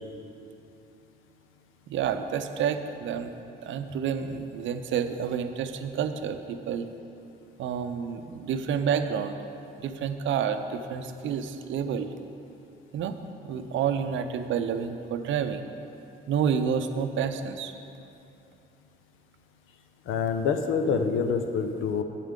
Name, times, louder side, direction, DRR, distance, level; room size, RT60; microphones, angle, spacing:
voice 1, 1.9-3.3 3.6-6.9 7.6-9.3 9.8-12.1 12.9-13.2 13.4-15.6 16.3-17.7, right 7 dB, 75° right, 9 dB, 0.5 m, -29 dB
voice 2, 20.1-22.0, left 5 dB, 85° left, 7 dB, 0.6 m, -26 dB
8.9 x 8.3 x 3.7 m, 2.7 s
cardioid pair, 90°, 20 cm